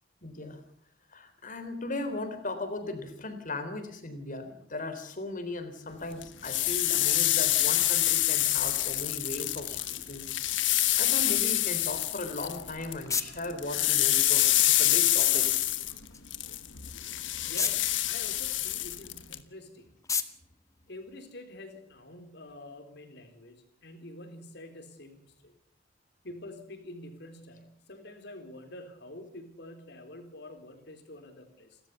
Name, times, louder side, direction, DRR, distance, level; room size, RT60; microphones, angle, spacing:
voice 1, 0.2-0.6 1.1-10.3 11.0-15.5, left 2 dB, 45° left, 9 dB, 3.7 m, -37 dB
sound 1, 6.2-13.0 13.3-19.4, left 14 dB, 85° left, 1.3 m, -26 dB
sound 2, 12.3-21.7, left 5 dB, 15° left, 1.3 m, -40 dB
voice 2, 17.1-19.9 20.9-25.5 26.2-31.8, left 1 dB, 65° left, 6 dB, 4.1 m, -47 dB
28.5 x 13.5 x 7.0 m, 0.69 s
head